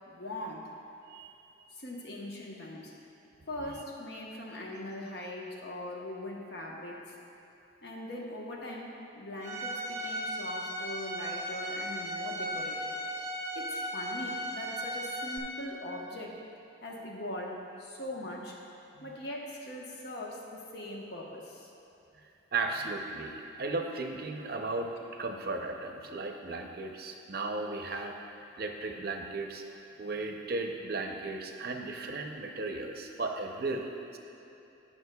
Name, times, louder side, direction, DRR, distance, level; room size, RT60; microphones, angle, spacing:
voice 1, 0.1-0.7 1.7-3.0 3.5-7.1 7.8-13.0 13.5-16.4 16.8-18.6 19.0-21.7, left 1 dB, 55° left, -1 dB, 1.0 m, -41 dB
Bowed string instrument, 9.4-15.4, equal, 15° right, 0.7 m, -36 dB
voice 2, 22.5-28.1 28.6-29.6 30.0-34.2, right 3 dB, 50° right, 3 dB, 0.6 m, -35 dB
17.5 x 6.1 x 2.3 m, 2.9 s
head